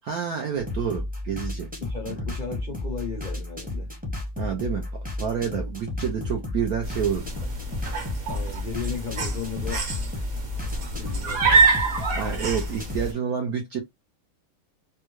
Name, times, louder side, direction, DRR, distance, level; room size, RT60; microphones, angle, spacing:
voice 1, 0.0-1.7 2.1-2.2 4.4-7.5 12.1-13.8, right 7 dB, 70° right, 0.9 m, -29 dB
sound 1, 0.6-13.1, left 1 dB, 10° right, 0.5 m, -33 dB
voice 2, 1.8-3.9 8.3-9.8 10.8-11.8, left 6 dB, 80° left, 0.4 m, -35 dB
sound 2, 6.8-13.1, right 4 dB, 45° right, 1.2 m, -26 dB
3.5 x 2.2 x 3.0 m
omnidirectional pair, 2.1 m